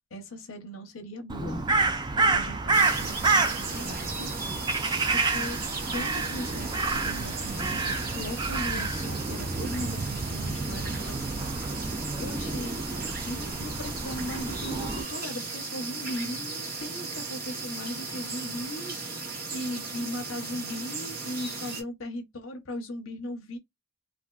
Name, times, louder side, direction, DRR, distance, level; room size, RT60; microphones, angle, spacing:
voice 1, 0.1-1.7 2.1-5.6 5.9-11.4 12.2-12.8 13.2-23.6, left 1 dB, 70° left, 0.7 m, -38 dB
Crow, 1.3-15.0, right 3 dB, 20° right, 0.3 m, -29 dB
sound 1, 2.7-21.8, right 4 dB, 45° right, 0.9 m, -37 dB
3.3 x 2.5 x 2.3 m
head